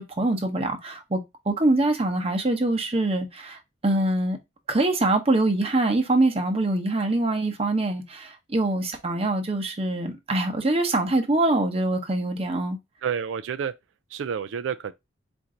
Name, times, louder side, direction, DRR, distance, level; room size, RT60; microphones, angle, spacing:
voice 1, 0.0-4.4 4.7-12.8, right 2 dB, 30° right, 0.8 m, -24 dB
voice 2, 13.0-13.7 14.1-14.9, right 7 dB, 90° right, 0.3 m, -29 dB
4.4 x 2.6 x 3.7 m
head